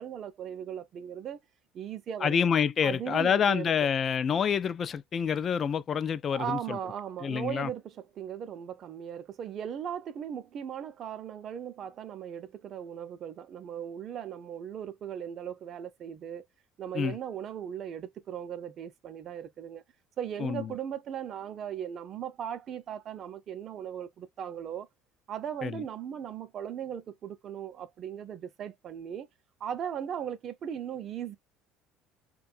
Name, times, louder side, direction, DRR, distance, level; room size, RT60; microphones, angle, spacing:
voice 1, 0.0-1.4 1.7-2.5 2.8-3.9 6.3-16.5 16.8-19.8 20.2-24.9 25.3-29.3 29.6-31.4, right 9 dB, 50° right, 0.5 m, -38 dB
voice 2, 2.2-6.8 7.2-7.7 16.9-17.2 20.4-20.6 25.6-25.8, left 7 dB, 40° left, 0.3 m, -27 dB
2.6 x 2.3 x 2.4 m
supercardioid pair, 85°, 0 cm